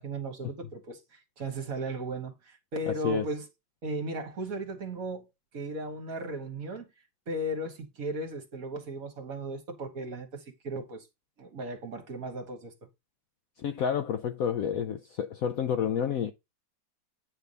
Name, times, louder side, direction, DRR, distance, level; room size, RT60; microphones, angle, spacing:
voice 1, 0.0-3.5 3.8-5.2 5.5-6.9 7.3-11.1 11.4-12.7, right 1 dB, 50° right, 1.7 m, -36 dB
voice 2, 13.6-16.3, left 8 dB, 70° left, 0.8 m, -29 dB
9.1 x 3.4 x 5.4 m
omnidirectional pair, 2.0 m